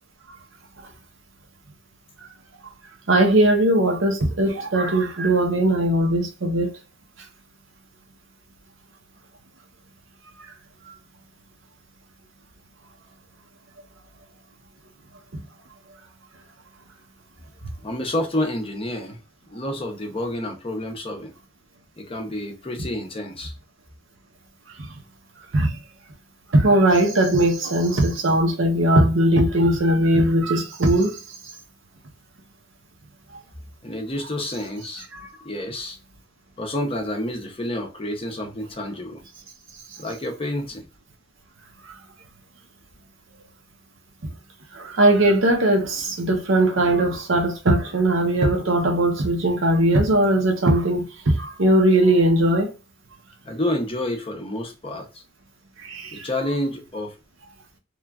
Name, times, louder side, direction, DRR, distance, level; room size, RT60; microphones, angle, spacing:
voice 1, 3.1-6.7 24.8-24.9 25.5-25.8 26.5-31.2 35.1-35.3 44.7-52.7 55.8-56.3, right 1 dB, 65° right, 0.7 m, -19 dB
voice 2, 17.8-19.2 19.5-21.3 22.0-23.5 33.8-35.0 35.4-36.0 36.6-39.2 40.0-40.9 53.4-55.1 56.1-57.1, left 1 dB, 30° left, 0.6 m, -29 dB
3.1 x 2.4 x 2.2 m
head